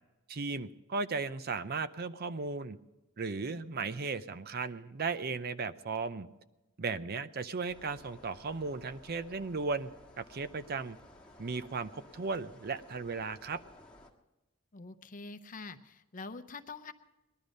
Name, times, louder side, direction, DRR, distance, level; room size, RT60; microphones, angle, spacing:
voice 1, 0.3-2.8 3.2-6.3 6.8-11.0 11.4-13.6, right 4 dB, 45° right, 13 dB, 0.6 m, -36 dB
sound 1, 7.7-14.1, left 1 dB, 5° left, 1.5 m, -56 dB
voice 2, 14.7-16.9, left 3 dB, 40° left, 9 dB, 0.7 m, -45 dB
19.5 x 11.5 x 5.2 m, 1.0 s
head